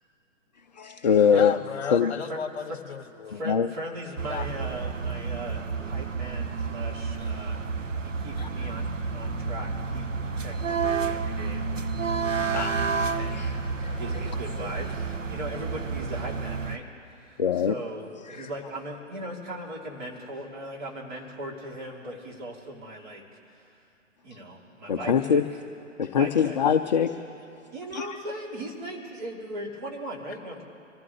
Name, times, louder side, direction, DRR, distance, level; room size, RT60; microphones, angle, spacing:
voice 1, 0.8-1.5 1.8-2.1 3.5-3.7 8.4-8.5 12.2-12.9 13.3-13.5 13.8-13.9 17.4-17.7 18.4-18.5 24.9-25.4 26.0-27.1 27.9-28.2, left 7 dB, 35° left, 7 dB, 0.5 m, -23 dB
voice 2, 1.3-3.5 4.3-4.5, left 7 dB, 55° left, 12 dB, 1.0 m, -34 dB
voice 3, 2.0-2.4 2.7-2.8 3.2-7.6 8.0-11.6 12.3-13.5 14.0-23.7 24.2-25.4 26.1-26.6 27.7-30.6, right 1 dB, 35° right, -3 dB, 3.3 m, -38 dB
sound 1, 4.2-16.8, right 5 dB, 75° right, 1.0 m, -30 dB
25.5 x 15.0 x 3.3 m, 2.6 s
figure-of-eight pair, 125°, 39 cm